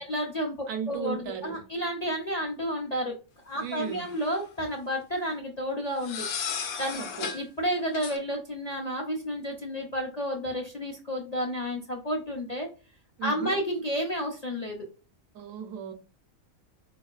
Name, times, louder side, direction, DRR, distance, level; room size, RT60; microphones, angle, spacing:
voice 1, 0.1-0.6 0.9-3.1 3.4-7.0 7.3-12.7 13.2-14.9, equal, 45° left, 0.5 m, -31 dB
voice 2, 0.7-1.6 3.6-4.1 7.0-7.3 13.2-13.6 15.3-15.9, right 8 dB, 75° right, 1.0 m, -35 dB
sound 1, 3.7-4.4 6.0-7.4 7.9-8.2, left 6 dB, 85° left, 1.1 m, -35 dB
4.4 x 2.8 x 2.3 m
omnidirectional pair, 1.5 m